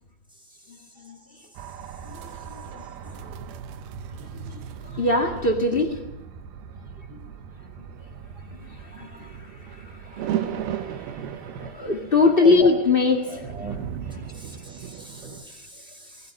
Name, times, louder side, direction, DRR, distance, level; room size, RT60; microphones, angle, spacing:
voice 1, 0.7-1.5 2.0-2.2 2.5-3.4 4.1-6.0 7.0-7.3 7.8-8.1 8.3-13.5 14.1-14.6 15.5-15.7, left 3 dB, 65° left, 3 dB, 0.5 m, -25 dB
sound 1, 1.6-15.5, right 8 dB, 80° right, 3.0 m, -36 dB
voice 2, 13.3-13.8 14.3-16.3, equal, ahead, 1 dB, 5.1 m, -40 dB
20.0 x 17.5 x 8.7 m, 0.88 s
omnidirectional pair, 4.4 m